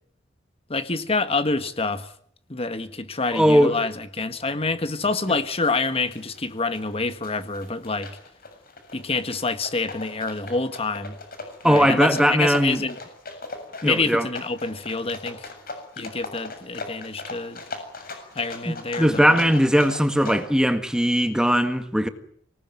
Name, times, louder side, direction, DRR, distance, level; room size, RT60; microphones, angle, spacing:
voice 1, 0.7-2.1 2.5-8.1 8.9-11.2 11.6-13.0 13.8-15.5 16.0-17.6 18.3-19.4, left 3 dB, 30° left, 1.6 m, -27 dB
voice 2, 3.3-3.7 11.6-12.8 13.8-14.3 19.0-22.1, equal, 5° right, 1.8 m, -19 dB
sound 1, 4.9-20.4, left 3 dB, 50° left, 7.3 m, -39 dB
25.5 x 19.5 x 9.5 m
head